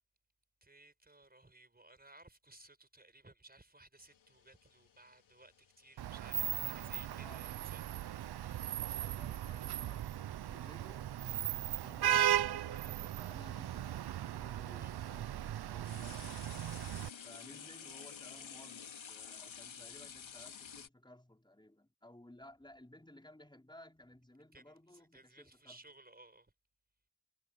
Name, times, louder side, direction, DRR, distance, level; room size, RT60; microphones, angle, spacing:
voice 1, 0.6-8.1 14.6-14.9 24.5-24.6 24.9-26.5, right 2 dB, 20° right, 4.6 m, -60 dB
sound 1, 4.0-12.2 13.3-13.4 14.2-20.9, left 7 dB, 75° left, 3.4 m, -54 dB
Vehicle horn car horn honking / Traffic noise roadway noise, 6.0-17.1, right 11 dB, 55° right, 0.5 m, -37 dB
voice 2, 7.1-7.7 9.0-11.3 11.8-16.3 17.2-25.8, left 1 dB, 10° left, 4.8 m, -58 dB
wide cardioid pair, 115°, 46 cm